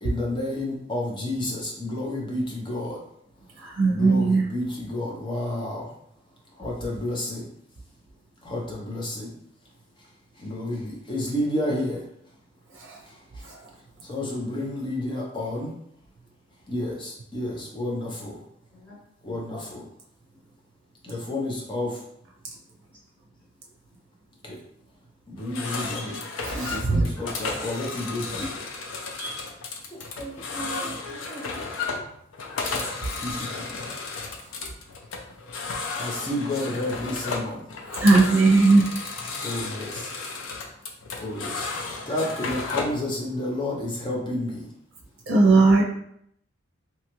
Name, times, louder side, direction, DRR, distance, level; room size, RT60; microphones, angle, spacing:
voice 1, 0.0-3.0 3.9-5.9 6.6-7.5 8.4-9.3 10.4-12.0 13.1-13.2 14.0-15.8 16.7-18.4 19.2-19.9 21.0-22.0 24.4-24.6 25.3-26.2 26.5-28.5 33.2-33.5 36.0-37.7 39.4-40.1 41.2-41.7 42.1-44.7, left 1 dB, 25° left, -2 dB, 0.6 m, -30 dB
voice 2, 3.6-4.5 12.9-13.0 26.4-27.1 29.2-29.4 37.9-38.8 45.3-45.8, right 3 dB, 75° right, -2 dB, 0.5 m, -18 dB
voice 3, 19.2-19.7 29.9-31.5, right 2 dB, 10° left, -8 dB, 1.1 m, -40 dB
sound 1, 25.4-43.0, left 4 dB, 90° left, 0.5 m, -33 dB
2.9 x 2.3 x 2.9 m, 0.72 s
head